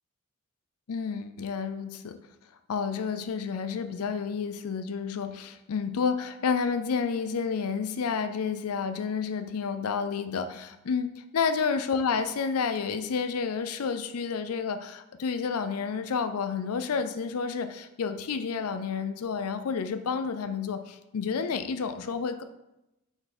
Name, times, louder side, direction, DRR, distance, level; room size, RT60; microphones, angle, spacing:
voice 1, 0.9-2.2 2.7-22.4, left 5 dB, 85° left, 10 dB, 0.5 m, -30 dB
5.4 x 4.5 x 4.3 m, 0.92 s
head